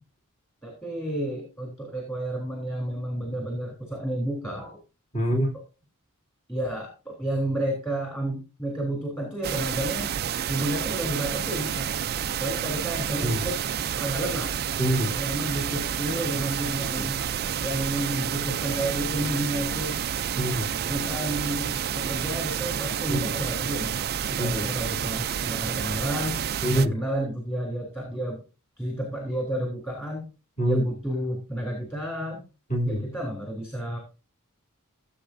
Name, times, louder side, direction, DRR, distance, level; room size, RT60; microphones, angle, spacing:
voice 1, 0.6-4.8 6.5-10.1 10.5-11.9 12.4-13.7 13.9-14.5 15.1-17.2 17.6-20.0 20.8-23.9 24.3-26.4 26.7-28.4 28.8-30.2 30.6-32.4 32.8-34.0, right 1 dB, 10° left, 0 dB, 3.4 m, -31 dB
voice 2, 5.1-5.5 13.2-13.4 14.8-15.1 20.4-20.7 23.1-23.2 24.4-24.6 26.6-26.9 30.6-30.8 32.7-33.0, equal, 35° left, -1 dB, 3.2 m, -24 dB
sound 1, 9.4-26.9, right 8 dB, 45° right, 0.4 m, -29 dB
16.5 x 7.9 x 2.6 m, 0.31 s
head